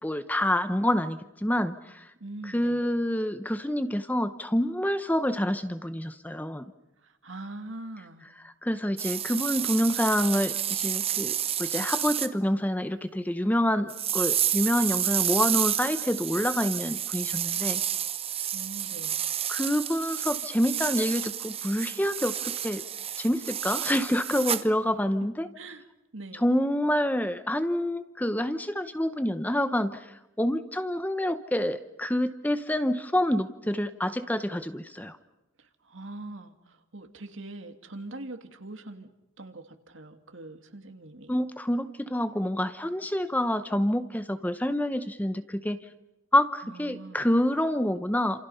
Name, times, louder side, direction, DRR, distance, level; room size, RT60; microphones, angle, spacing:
voice 1, 0.0-2.1 2.4-6.7 8.4-17.8 19.5-22.8 23.2-25.5 26.3-35.2 41.3-45.8 46.3-48.5, left 1 dB, 10° left, 10 dB, 0.8 m, -27 dB
voice 2, 2.2-2.8 7.0-8.3 18.5-19.2 25.6-25.8 26.1-26.5 35.6-39.1 39.4-41.3 46.6-47.2, right 2 dB, 65° right, 7 dB, 2.3 m, -42 dB
sound 1, 9.0-12.3 13.9-24.7, right 10 dB, 25° right, 0.9 m, -30 dB
29.0 x 27.5 x 5.6 m, 0.95 s
head